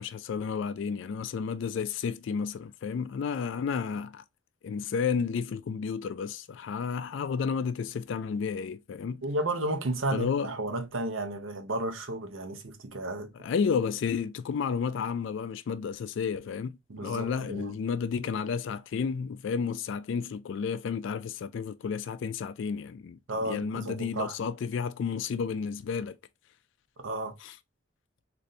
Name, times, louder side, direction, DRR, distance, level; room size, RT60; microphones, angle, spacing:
voice 1, 0.0-4.2 4.6-9.2 10.1-10.5 13.4-26.2 27.4-27.5, left 6 dB, 70° left, 0.3 m, -32 dB
voice 2, 9.2-13.3 16.9-17.7 23.3-24.3 27.0-27.4, right 2 dB, 85° right, 0.8 m, -33 dB
4.0 x 2.6 x 3.2 m
head